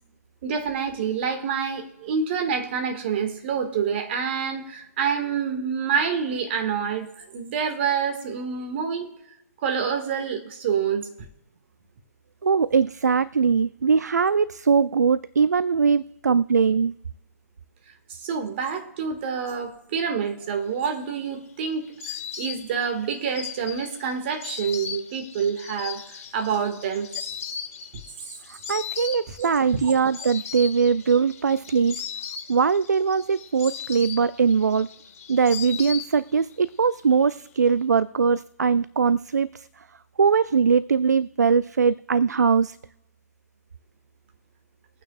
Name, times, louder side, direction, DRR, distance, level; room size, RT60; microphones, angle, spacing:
voice 1, 0.4-9.1 9.6-11.1 18.2-26.0 26.3-27.1 29.9-30.0, right 6 dB, 40° right, 1.8 m, -27 dB
voice 2, 12.4-16.9 28.7-32.0 32.5-34.9 35.3-39.7 40.2-42.8, right 5 dB, 80° right, 0.4 m, -21 dB
Insect, 20.8-36.6 36.8-37.6, left 7 dB, 55° left, 2.1 m, -38 dB
22.5 x 9.1 x 2.4 m
figure-of-eight pair, 130°, 9 cm